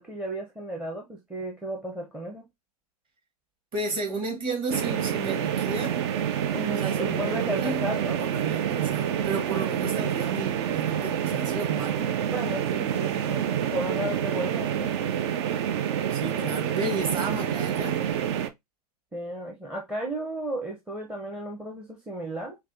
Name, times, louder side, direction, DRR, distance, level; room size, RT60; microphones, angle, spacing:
voice 1, 0.0-2.5 6.5-8.2 12.3-13.4 13.7-15.0 19.1-22.6, right 1 dB, 5° right, 0.7 m, -34 dB
voice 2, 3.7-6.0 6.6-7.9 8.2-12.1 16.1-18.1, right 3 dB, 25° right, 1.5 m, -32 dB
sound 1, 4.7-18.5, right 9 dB, 45° right, 0.5 m, -28 dB
5.4 x 2.3 x 2.6 m
figure-of-eight pair, 110°, 20 cm